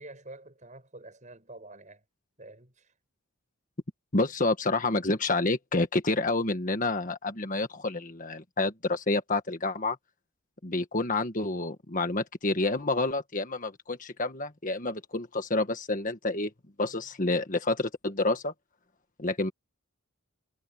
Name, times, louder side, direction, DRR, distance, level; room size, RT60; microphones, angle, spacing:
voice 1, 0.0-2.0 2.4-2.9, right 2 dB, 35° right, 7.3 m, -48 dB
voice 2, 4.1-10.0 10.6-16.5 16.8-18.5 19.2-19.5, left 2 dB, 40° left, 1.6 m, -28 dB
head